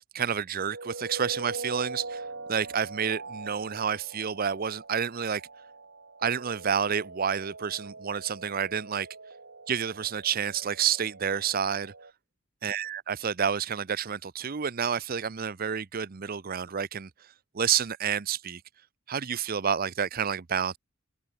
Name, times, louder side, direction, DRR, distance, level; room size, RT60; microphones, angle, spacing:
voice 1, 0.0-5.4 6.2-9.1 9.7-11.9 12.6-17.1 17.5-18.6 19.1-20.8, right 7 dB, 45° right, 0.6 m, -29 dB
sound 1, 0.7-12.1, right 3 dB, 65° right, 2.7 m, -42 dB
head